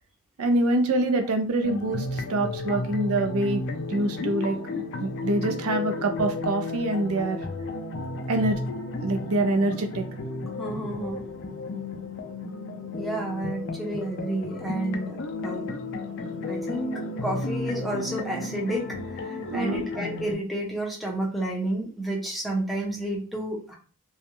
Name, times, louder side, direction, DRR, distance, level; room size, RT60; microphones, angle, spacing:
voice 1, 0.4-3.6 3.9-7.4 8.3-8.6 9.0-10.1 19.5-19.8, right 2 dB, 75° right, 6 dB, 0.5 m, -25 dB
sound 1, 1.6-20.3, left 2 dB, 55° left, 0.4 m, -33 dB
voice 2, 10.6-11.2 12.9-15.7 16.5-23.7, right 1 dB, ahead, -2 dB, 0.5 m, -31 dB
2.3 x 2.1 x 2.9 m, 0.38 s
head